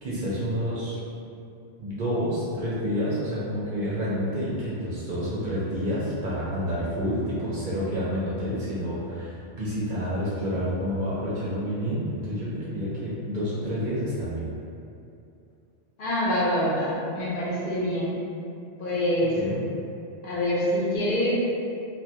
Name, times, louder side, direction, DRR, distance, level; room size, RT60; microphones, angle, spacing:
voice 1, 0.0-1.0 1.8-14.5 19.3-19.6, equal, 60° right, -8 dB, 0.6 m, -29 dB
voice 2, 16.0-18.2 18.8-19.4 20.2-21.3, left 1 dB, 60° left, -8 dB, 0.7 m, -25 dB
2.2 x 2.2 x 2.7 m, 2.6 s
omnidirectional pair, 1.1 m